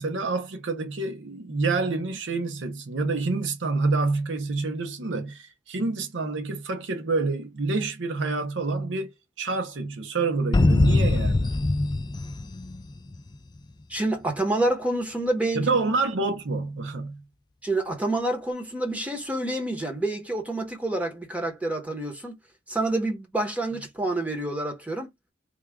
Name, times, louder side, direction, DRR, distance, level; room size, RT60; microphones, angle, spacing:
voice 1, 0.0-11.5 15.5-17.2, right 3 dB, 85° right, 0.7 m, -27 dB
sound 1, 10.5-13.3, left 2 dB, 25° left, 0.3 m, -22 dB
voice 2, 13.9-15.8 17.6-22.3 22.7-25.1, right 2 dB, 10° right, 1.0 m, -28 dB
3.5 x 2.3 x 3.5 m
head